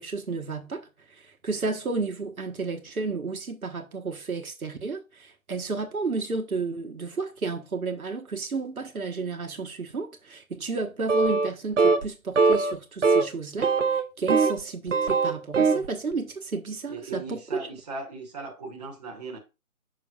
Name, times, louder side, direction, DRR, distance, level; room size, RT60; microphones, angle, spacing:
voice 1, 0.0-17.4, right 4 dB, 85° right, 1.3 m, -32 dB
sound 1, 11.1-11.5 11.8-12.1 12.4-12.7 13.0-13.3 13.6-14.6 14.9-15.9, right 4 dB, 60° right, 0.8 m, -21 dB
voice 2, 16.9-19.4, right 3 dB, 30° right, 1.3 m, -37 dB
6.8 x 6.2 x 2.4 m
figure-of-eight pair, 160°, 42 cm